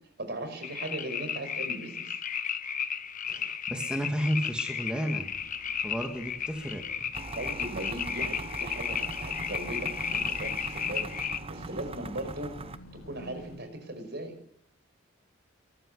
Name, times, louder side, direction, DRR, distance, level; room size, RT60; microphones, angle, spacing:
voice 1, 0.2-2.2 7.4-11.1 11.5-12.5 12.9-14.4, right 1 dB, 55° right, 8 dB, 5.6 m, -38 dB
sound 1, 0.6-11.4, left 7 dB, 40° left, 1.3 m, -34 dB
voice 2, 3.3-5.3 5.8-7.1, equal, 5° right, 2 dB, 2.2 m, -32 dB
sound 2, 5.3-13.6, equal, 80° left, 4.3 m, -52 dB
sound 3, 7.1-12.8, right 3 dB, 30° right, 0.9 m, -41 dB
23.5 x 13.5 x 9.9 m, 0.68 s
head